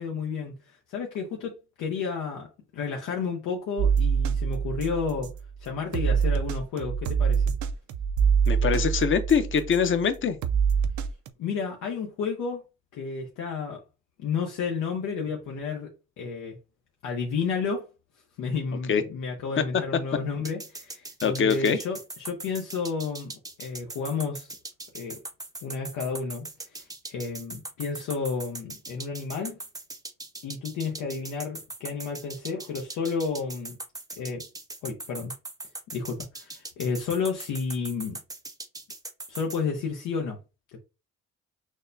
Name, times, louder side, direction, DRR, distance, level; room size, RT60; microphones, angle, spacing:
voice 1, 0.0-5.3 5.6-7.5 11.4-12.6 12.9-13.8 14.2-15.9 16.2-16.6 17.0-17.9 18.4-23.3 23.6-24.5 24.9-25.2 25.6-29.6 30.4-33.8 34.2-34.5 34.8-35.3 35.9-38.2 39.3-40.4, left 5 dB, 90° left, 0.8 m, -31 dB
sound 1, 3.8-5.4 5.9-9.9 10.4-11.3, right 6 dB, 70° right, 0.5 m, -25 dB
voice 2, 8.5-10.4 18.9-19.0 21.2-21.8, left 6 dB, 40° left, 0.7 m, -23 dB
sound 2, 20.4-39.6, right 2 dB, 10° right, 0.6 m, -40 dB
6.3 x 2.2 x 2.6 m
cardioid pair, 90°, 30 cm